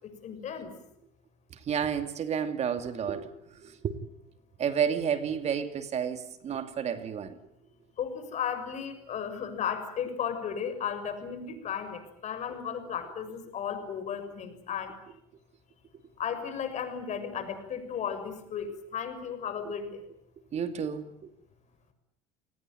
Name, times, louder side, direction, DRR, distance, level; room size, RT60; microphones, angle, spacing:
voice 1, 0.0-0.7 8.0-14.9 16.2-20.0, left 7 dB, 50° left, 6.6 m, -35 dB
voice 2, 1.7-3.3 3.6-4.0 4.6-7.3 20.5-21.1, right 7 dB, 45° right, 2.6 m, -30 dB
28.5 x 19.5 x 9.3 m
supercardioid pair, 85°, 16 cm